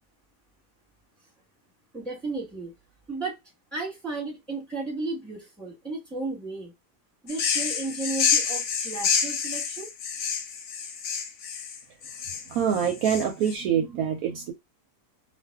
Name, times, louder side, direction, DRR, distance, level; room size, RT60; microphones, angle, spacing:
voice 1, 1.9-2.7 3.1-3.4 3.7-6.7 7.2-9.9, right 3 dB, ahead, 1.1 m, -34 dB
sound 1, 7.3-13.6, left 6 dB, 65° left, 0.9 m, -28 dB
voice 2, 12.5-14.5, right 8 dB, 70° right, 1.0 m, -25 dB
2.5 x 2.3 x 3.4 m
omnidirectional pair, 1.7 m